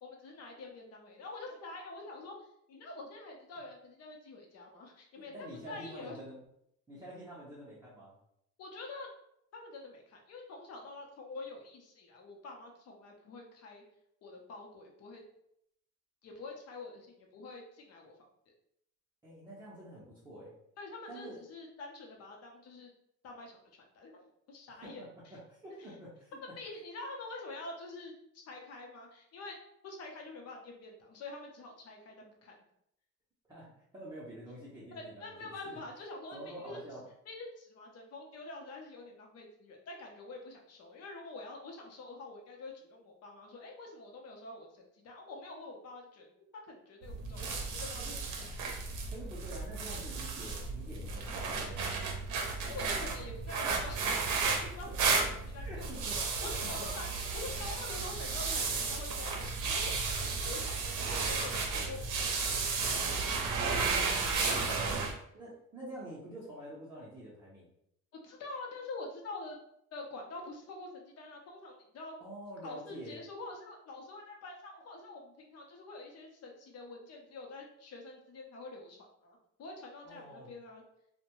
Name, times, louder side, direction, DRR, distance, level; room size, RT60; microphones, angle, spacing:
voice 1, 0.0-2.3 2.7-6.2 8.6-9.1 9.5-13.8 14.2-15.2 16.2-18.1 20.8-22.9 23.2-25.0 25.8-25.9 26.6-29.5 29.8-32.6 34.9-36.8 37.3-48.0 48.4-48.7 52.7-54.9 55.1-59.9 60.2-63.4 63.7-65.0 68.1-69.6 69.9-72.2 72.6-80.8, left 2 dB, 55° left, 1 dB, 0.7 m, -46 dB
voice 2, 5.2-6.4 6.9-8.1 19.2-20.5 21.1-21.4 24.7-26.4 33.5-35.8 36.3-37.1 47.4-47.5 48.0-48.2 49.1-52.1 55.6-56.5 56.8-56.9 64.3-64.7 65.3-67.7 72.2-73.2 80.0-80.5, right 1 dB, 15° right, -9 dB, 0.6 m, -47 dB
sound 1, 47.0-65.1, right 4 dB, 90° right, 0.6 m, -33 dB
2.6 x 2.1 x 2.9 m, 0.75 s
cardioid pair, 150°, 30 cm